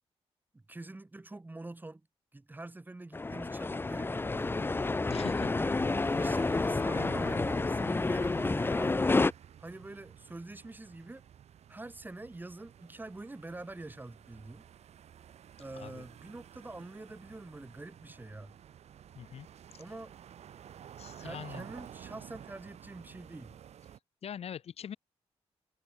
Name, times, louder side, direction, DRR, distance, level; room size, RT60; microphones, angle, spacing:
voice 1, 0.5-2.0 2.3-4.8 5.4-5.8 6.2-9.2 9.6-11.2 11.7-14.7 15.6-18.5 19.8-20.1 21.2-23.6, right 2 dB, 15° right, 4.4 m, -45 dB
sound 1, 3.1-9.3, left 3 dB, 20° left, 0.7 m, -29 dB
sound 2, 4.3-24.0, right 9 dB, 90° right, 2.2 m, -51 dB
voice 2, 5.1-5.5 15.7-16.0 19.2-19.5 19.7-19.8 21.0-21.6 24.2-25.0, left 8 dB, 70° left, 1.0 m, -43 dB
wide cardioid pair, 120°, 11 cm